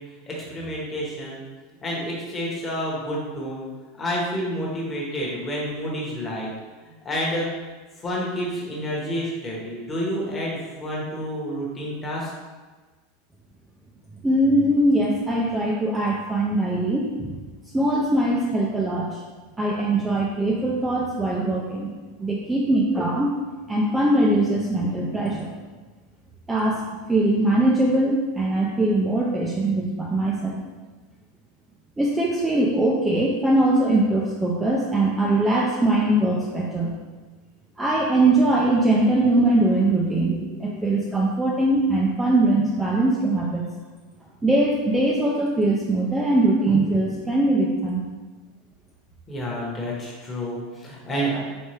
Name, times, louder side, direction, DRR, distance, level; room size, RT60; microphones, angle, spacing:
voice 1, 0.3-1.4 1.8-3.6 4.0-6.5 6.8-7.5 8.0-12.3 49.3-51.4, equal, 20° left, -4 dB, 1.0 m, -29 dB
voice 2, 14.2-17.4 17.7-19.2 19.6-21.9 22.2-23.3 23.7-25.5 26.5-26.8 27.1-30.6 32.0-36.9 37.8-43.7 44.4-48.0, right 1 dB, 10° right, -3 dB, 0.4 m, -21 dB
4.4 x 3.3 x 3.3 m, 1.3 s
supercardioid pair, 160°, 0 cm